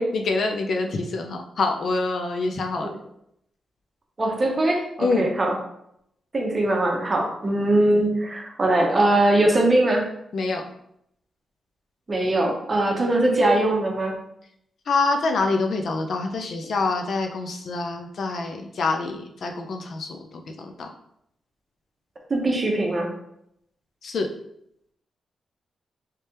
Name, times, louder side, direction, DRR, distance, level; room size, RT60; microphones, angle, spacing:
voice 1, 0.1-2.9 5.0-5.3 10.3-10.6 14.9-20.9 24.0-24.3, left 3 dB, 60° left, 4 dB, 0.4 m, -26 dB
voice 2, 4.2-5.5 6.3-10.0 12.1-14.1 22.3-23.1, right 1 dB, 30° right, 0 dB, 0.8 m, -21 dB
3.2 x 3.2 x 2.8 m, 0.75 s
wide cardioid pair, 130°, 0 cm